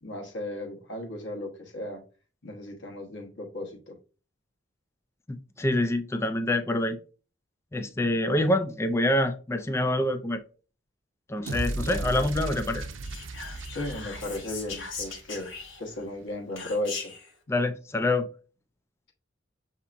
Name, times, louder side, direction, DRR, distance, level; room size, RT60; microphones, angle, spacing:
voice 1, 0.0-2.0 2.4-4.0 11.8-12.2 13.7-15.5 15.8-17.1, left 1 dB, 65° left, 1.2 m, -35 dB
voice 2, 5.3-7.0 7.7-10.4 11.3-12.9 17.5-18.3, left 1 dB, 15° left, 0.4 m, -26 dB
sound 1, 11.5-15.7, right 2 dB, 85° right, 0.6 m, -35 dB
Whispering, 13.0-16.0 16.6-17.3, left 5 dB, 85° left, 1.2 m, -39 dB
6.9 x 2.8 x 2.5 m
head